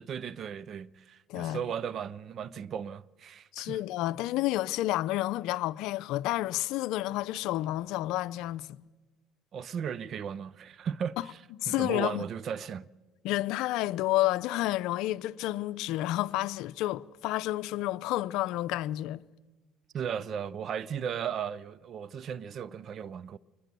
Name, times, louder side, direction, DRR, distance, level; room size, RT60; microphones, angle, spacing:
voice 1, 0.0-3.8 9.5-12.9 19.9-23.4, right 8 dB, 50° right, 0.6 m, -36 dB
voice 2, 3.5-8.8 11.6-12.2 13.2-19.2, left 16 dB, 70° left, 0.6 m, -30 dB
21.5 x 21.0 x 6.9 m
supercardioid pair, 85°, 0 cm